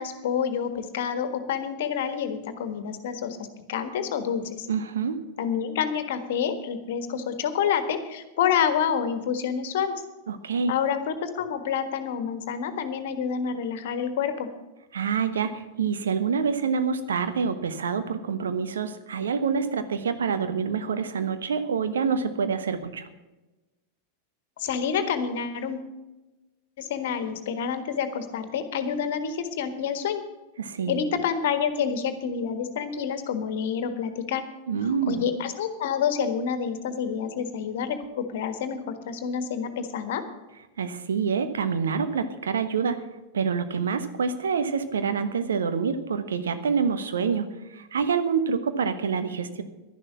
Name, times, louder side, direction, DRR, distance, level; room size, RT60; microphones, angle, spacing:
voice 1, 0.0-4.7 5.4-9.9 10.7-14.5 24.6-25.9 26.8-30.2 30.9-34.4 35.1-40.2, left 7 dB, 55° left, 10 dB, 1.5 m, -28 dB
voice 2, 4.7-5.2 10.3-10.7 14.9-23.1 30.6-30.9 34.7-35.2 40.8-43.0 43.3-49.6, right 6 dB, 65° right, 10 dB, 1.2 m, -27 dB
12.0 x 11.0 x 6.0 m, 1.1 s
figure-of-eight pair, 90°, 0 cm